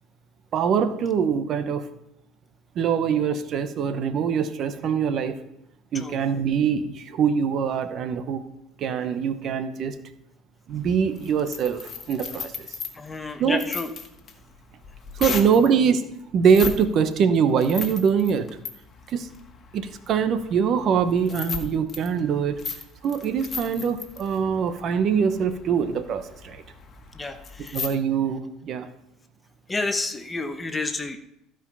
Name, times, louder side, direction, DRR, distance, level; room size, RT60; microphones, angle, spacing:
voice 1, 0.5-1.9 2.7-5.3 5.9-8.4 8.8-9.9 10.7-12.7 13.4-13.6 15.1-16.0 16.3-18.5 19.1-19.3 19.7-22.6 23.0-26.6 27.7-28.9, right 7 dB, 50° right, 9 dB, 1.0 m, -23 dB
sound 1, 10.7-15.7 16.4-16.8 17.1-27.9, left 5 dB, 40° left, 1.6 m, -37 dB
voice 2, 12.9-13.9 27.1-27.8 29.7-31.2, left 3 dB, 20° left, 8 dB, 1.1 m, -30 dB
15.0 x 5.1 x 5.5 m, 0.81 s
supercardioid pair, 95°, 0 cm